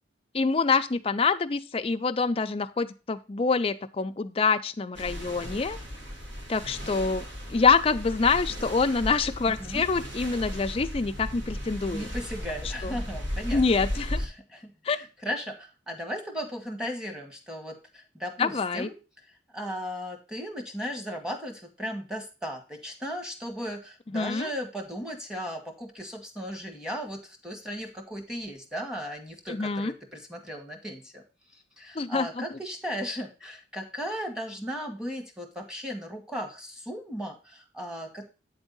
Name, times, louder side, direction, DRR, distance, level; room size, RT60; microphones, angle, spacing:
voice 1, 0.3-5.8 6.5-7.2 7.5-12.1 12.8-13.0 13.5-14.2 14.9-15.0 18.4-18.9 24.1-24.5 29.5-29.9 32.0-32.4, left 4 dB, 30° left, 9 dB, 0.4 m, -26 dB
sound 1, 4.9-14.3, equal, 80° right, 1.9 m, -36 dB
voice 2, 11.9-13.6 14.2-19.0 19.5-31.2 31.8-38.3, equal, 5° right, 3 dB, 1.3 m, -36 dB
8.7 x 3.6 x 5.3 m, 0.31 s
head